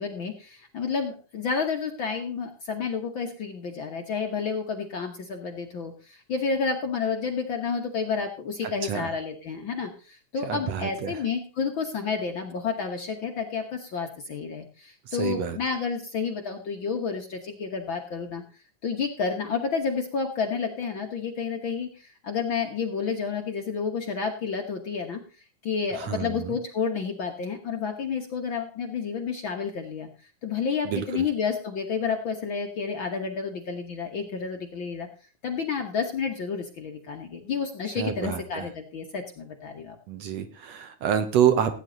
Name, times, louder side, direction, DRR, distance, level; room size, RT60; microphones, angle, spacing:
voice 1, 0.0-18.4 18.8-25.2 25.6-30.1 30.4-35.1 35.4-40.0, left 5 dB, 55° left, 3 dB, 1.6 m, -30 dB
voice 2, 10.4-11.2 15.1-15.6 26.0-26.5 30.9-31.2 38.0-38.7 40.1-41.7, right 9 dB, 65° right, 8 dB, 2.1 m, -27 dB
16.0 x 9.2 x 3.9 m, 0.35 s
omnidirectional pair, 3.4 m